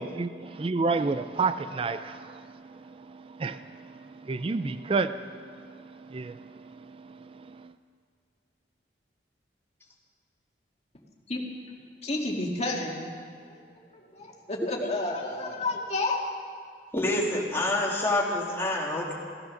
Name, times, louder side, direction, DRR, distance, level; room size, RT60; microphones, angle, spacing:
voice 1, 0.0-7.7, right 4 dB, 30° right, 0.4 m, -32 dB
voice 2, 12.0-13.0 13.4-13.5 13.9-16.2, left 2 dB, 35° left, 2.1 m, -31 dB
voice 3, 16.9-19.1, left 1 dB, 15° left, 2.5 m, -27 dB
16.5 x 13.0 x 6.5 m
head